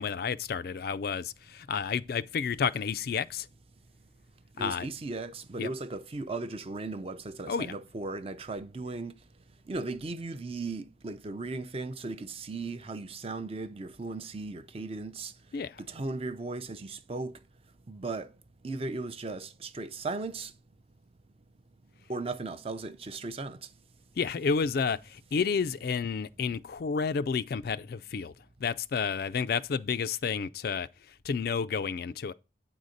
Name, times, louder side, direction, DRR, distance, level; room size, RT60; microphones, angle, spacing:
voice 1, 0.0-3.5 4.6-4.9 5.6-5.7 7.5-7.7 15.5-15.8 24.2-28.3 28.6-30.9 31.2-32.3, left 6 dB, 50° left, 0.3 m, -30 dB
voice 2, 4.6-9.1 9.7-15.3 15.8-17.3 17.9-18.3 18.6-20.5 22.1-23.6, right 3 dB, 30° right, 0.5 m, -37 dB
8.9 x 4.0 x 6.4 m
head